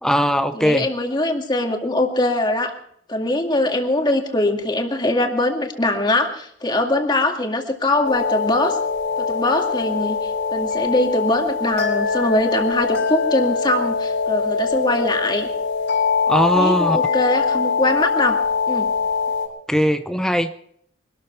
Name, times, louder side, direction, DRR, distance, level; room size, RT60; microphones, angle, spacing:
voice 1, 0.0-0.9 16.3-17.0 19.7-20.5, equal, 5° left, 9 dB, 0.6 m, -19 dB
voice 2, 0.5-2.7 3.1-8.8 9.2-15.5 16.6-18.4 18.7-18.9, left 1 dB, 25° left, 3 dB, 2.1 m, -22 dB
sound 1, 8.0-19.5, left 5 dB, 70° left, 5.7 m, -22 dB
24.0 x 13.0 x 4.5 m, 0.66 s
head